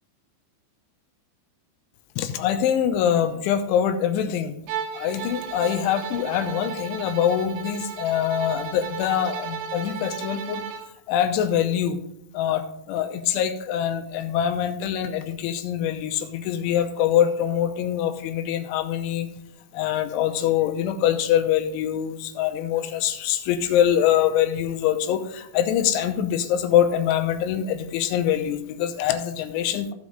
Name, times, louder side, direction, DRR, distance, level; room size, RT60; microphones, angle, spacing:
voice 1, 2.2-4.5 4.9-10.6 11.1-12.0 12.3-19.3 19.7-29.9, left 10 dB, 85° left, 7 dB, 3.2 m, -24 dB
Bowed string instrument, 4.7-10.9, right 8 dB, 90° right, 3.2 m, -35 dB
15.5 x 5.2 x 3.7 m, 0.77 s
omnidirectional pair, 5.4 m